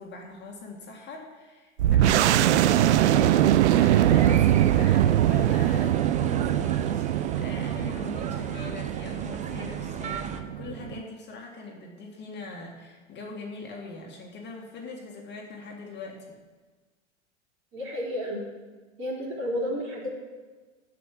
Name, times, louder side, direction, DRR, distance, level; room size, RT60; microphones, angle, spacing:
voice 1, 0.0-3.1 3.4-16.4, left 3 dB, 30° left, 0 dB, 1.8 m, -42 dB
sound 1, 1.8-11.0, right 12 dB, 70° right, 0.5 m, -22 dB
sound 2, 2.6-10.4, right 6 dB, 20° right, 0.8 m, -37 dB
voice 2, 17.7-18.4 19.0-20.1, equal, 35° right, -2 dB, 3.7 m, -31 dB
7.9 x 7.6 x 8.4 m, 1.3 s
hypercardioid pair, 95°, 36 cm